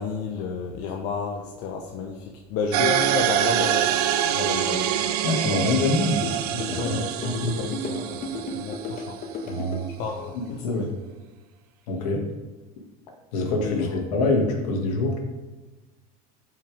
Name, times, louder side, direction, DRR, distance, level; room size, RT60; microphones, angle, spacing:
voice 1, 0.0-3.9 4.3-4.9 6.8-6.9 7.6-8.3 8.5-9.2 10.0-10.9 13.6-13.9, left 5 dB, 60° left, 2 dB, 1.1 m, -31 dB
sound 1, 2.7-9.3, right 10 dB, 80° right, 0.7 m, -25 dB
voice 2, 5.2-7.6 9.4-9.8 10.3-10.9 11.9-12.2 13.3-15.2, left 2 dB, 75° left, 1 dB, 2.2 m, -25 dB
sound 2, 5.8-9.8, left 1 dB, 45° left, 1.6 m, -33 dB
12.5 x 5.9 x 3.6 m, 1.2 s
supercardioid pair, 95°, 19 cm